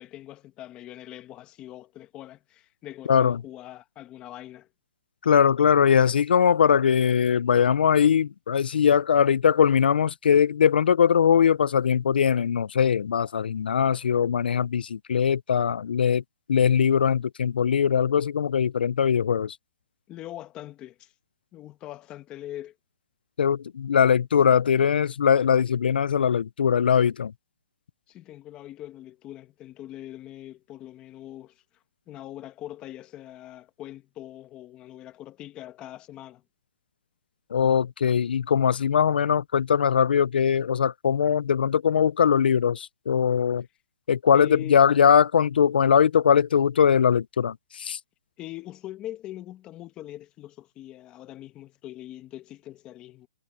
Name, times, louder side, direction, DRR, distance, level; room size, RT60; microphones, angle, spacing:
voice 1, 0.0-4.7 20.1-21.1 21.5-22.7 28.1-31.6 32.1-36.4 44.3-44.9 48.4-53.3, left 14 dB, 15° left, 1.2 m, -42 dB
voice 2, 3.1-3.4 5.2-16.2 16.5-19.6 23.4-27.3 37.5-43.6 44.1-48.0, left 7 dB, 75° left, 0.5 m, -21 dB
hypercardioid pair, 165°, 5 cm